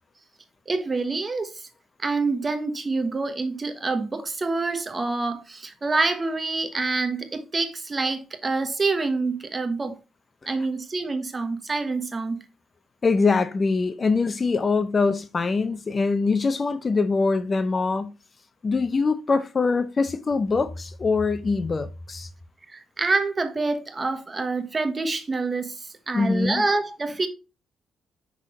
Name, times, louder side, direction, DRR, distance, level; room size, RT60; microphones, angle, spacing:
voice 1, 0.7-1.7 2.0-10.0 10.5-12.4 17.7-17.8 22.7-27.3, right 3 dB, 30° right, 1.2 m, -27 dB
voice 2, 13.0-18.1 18.6-22.3 26.1-26.6, left 4 dB, 35° left, 0.6 m, -23 dB
6.1 x 5.7 x 3.1 m
cardioid pair, 90°, 0 cm